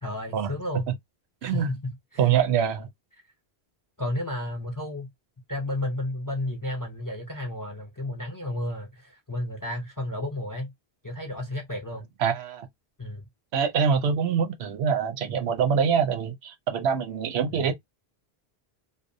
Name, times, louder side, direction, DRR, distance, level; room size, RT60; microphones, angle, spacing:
voice 1, 0.0-0.9 1.4-2.3 4.0-5.1 5.5-10.7 11.0-12.0 13.0-13.3 17.5-17.7, left 1 dB, 35° left, 0.3 m, -32 dB
voice 2, 2.2-2.9 12.2-12.7 13.5-17.7, right 7 dB, 90° right, 0.8 m, -24 dB
2.6 x 2.0 x 2.5 m
omnidirectional pair, 1.0 m